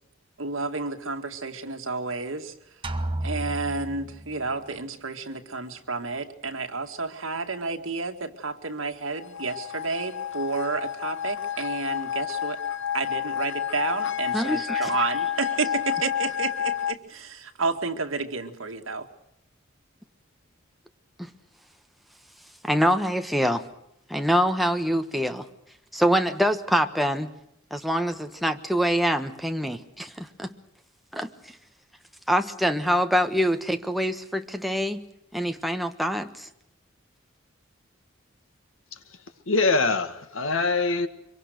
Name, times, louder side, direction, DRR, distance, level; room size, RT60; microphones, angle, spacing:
voice 1, 0.4-2.5 3.2-12.6 12.9-19.1, right 4 dB, 75° right, 5 dB, 2.1 m, -31 dB
sound 1, 2.8-4.7, right 1 dB, 25° right, 1.2 m, -32 dB
sound 2, 9.1-16.9, left 9 dB, 65° left, 0.9 m, -30 dB
voice 2, 14.3-14.9 21.2-21.3 22.6-23.6 24.1-25.5 25.9-27.3 27.7-30.5 31.1-31.3 32.3-35.1 35.3-36.5, equal, ahead, 6 dB, 1.3 m, -25 dB
voice 3, 39.5-41.1, left 3 dB, 85° left, 9 dB, 1.9 m, -23 dB
25.0 x 23.5 x 6.5 m, 0.79 s
head